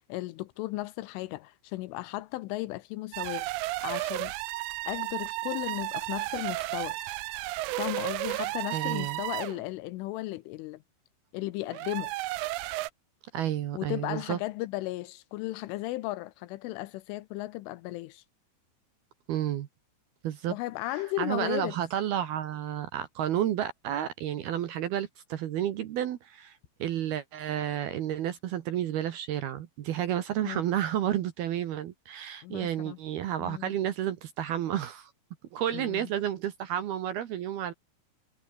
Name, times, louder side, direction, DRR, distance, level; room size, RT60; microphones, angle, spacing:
voice 1, 0.1-3.5 3.8-4.3 4.8-7.0 7.8-10.8 11.3-12.1 13.7-18.2 20.5-21.8 30.4-30.6 32.4-33.0 33.4-33.8 35.7-36.1, left 18 dB, 85° left, 3.1 m, -35 dB
sound 1, 3.1-9.6 11.7-12.9, right 19 dB, 90° right, 2.6 m, -33 dB
voice 2, 8.7-9.2 13.3-14.4 19.3-19.7 20.2-20.5 20.9-35.1 35.5-37.7, right 11 dB, 65° right, 2.6 m, -31 dB
omnidirectional pair, 5.9 m